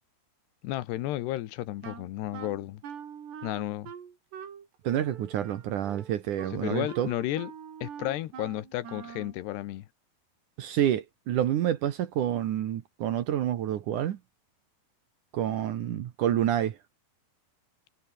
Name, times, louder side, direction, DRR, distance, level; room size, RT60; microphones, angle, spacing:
voice 1, 0.6-2.8 3.4-3.9 6.6-7.5 7.8-9.9, left 15 dB, 90° left, 3.4 m, -33 dB
Wind instrument woodwind instrument, 1.8-9.4, right 8 dB, 90° right, 5.5 m, -44 dB
voice 2, 4.8-7.1 10.6-14.2 15.3-16.8, right 11 dB, 65° right, 2.3 m, -28 dB
omnidirectional pair, 4.7 m